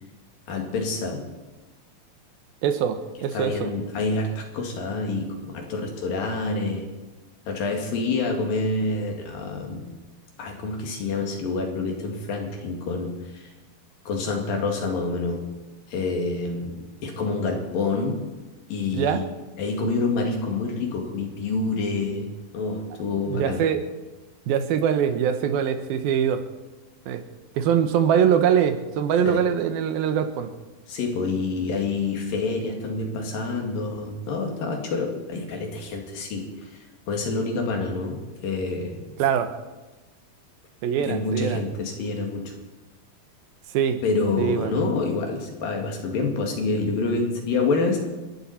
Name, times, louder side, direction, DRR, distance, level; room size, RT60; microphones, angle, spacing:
voice 1, 0.5-1.3 3.3-6.9 7.5-10.0 10.4-13.5 14.1-15.6 15.9-18.3 18.7-19.3 19.6-23.6 29.3-29.4 30.9-36.6 37.1-39.0 41.0-42.5 44.0-48.0, left 3 dB, 70° left, 2 dB, 3.9 m, -27 dB
voice 2, 2.6-3.7 18.9-19.2 23.3-23.8 24.5-26.4 27.1-27.2 27.6-30.5 39.2-39.6 40.8-41.6 43.7-44.0 44.4-44.7, right 8 dB, 90° right, 8 dB, 2.9 m, -23 dB
29.5 x 11.5 x 4.3 m, 1.2 s
omnidirectional pair, 4.2 m